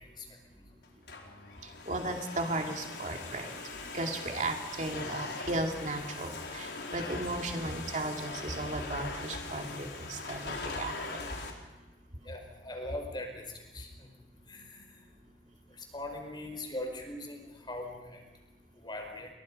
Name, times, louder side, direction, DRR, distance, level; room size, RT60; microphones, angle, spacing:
Domestic sounds home sounds, 0.8-11.5, left 3 dB, 70° left, 4.3 m, -41 dB
voice 1, 1.9-3.5 3.9-10.9 11.3-11.4, right 2 dB, 40° right, 3 dB, 2.4 m, -35 dB
voice 2, 12.2-13.4 13.7-13.9 14.5-14.8 15.9-18.2 18.8-19.3, left 1 dB, 25° left, 3 dB, 4.9 m, -40 dB
30.0 x 23.5 x 5.5 m, 1.2 s
head